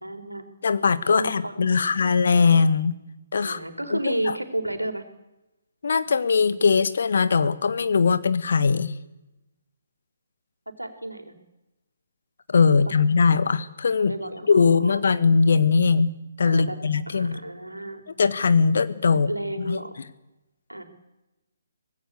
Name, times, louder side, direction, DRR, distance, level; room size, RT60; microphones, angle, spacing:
voice 1, 0.0-0.4 1.1-1.9 3.4-5.0 10.8-11.3 12.7-12.9 14.0-15.0 16.4-16.8 17.1-18.0 19.1-19.9 20.7-20.8, right 1 dB, 85° right, 6 dB, 4.1 m, -32 dB
voice 2, 0.6-3.0 3.3-3.6 3.9-4.3 5.8-8.9 12.5-14.1 14.5-17.4 18.2-19.3 19.7-19.8, left 5 dB, 55° left, 14 dB, 1.4 m, -20 dB
24.0 x 19.5 x 8.2 m, 0.99 s
figure-of-eight pair, 135°, 0 cm